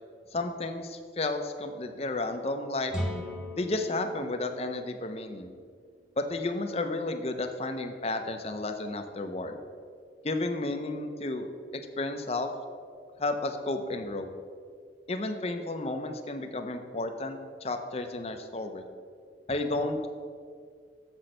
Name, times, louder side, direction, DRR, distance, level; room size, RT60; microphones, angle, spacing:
voice 1, 0.3-2.9 3.5-5.5 6.2-9.6 10.2-11.5 11.7-12.5 13.2-14.3 15.1-18.8 19.5-20.1, left 2 dB, 35° left, 6 dB, 0.6 m, -32 dB
sound 1, 2.9-6.7, equal, 5° right, 1.1 m, -39 dB
7.2 x 6.0 x 6.5 m, 2.1 s
head